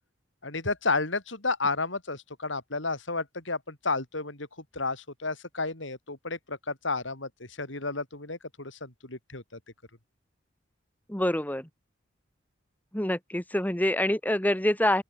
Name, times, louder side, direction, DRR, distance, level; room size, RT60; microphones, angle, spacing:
voice 1, 0.4-4.5 4.7-7.3 7.6-9.6, left 3 dB, 75° left, 4.9 m, -32 dB
voice 2, 11.1-11.7 12.9-15.0, left 1 dB, 10° left, 1.8 m, -26 dB
open air
head